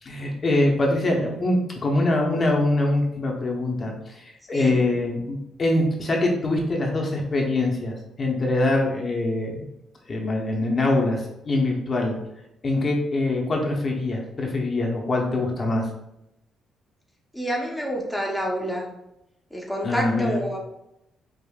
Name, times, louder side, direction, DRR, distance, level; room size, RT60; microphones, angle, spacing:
voice 1, 0.0-9.6 10.1-12.2 12.6-15.9 19.8-20.4, left 2 dB, 40° left, 0 dB, 0.8 m, -24 dB
voice 2, 17.3-18.9 19.5-20.6, equal, ahead, -2 dB, 0.8 m, -28 dB
4.9 x 2.5 x 2.3 m, 0.85 s
cardioid pair, 90°, 0 cm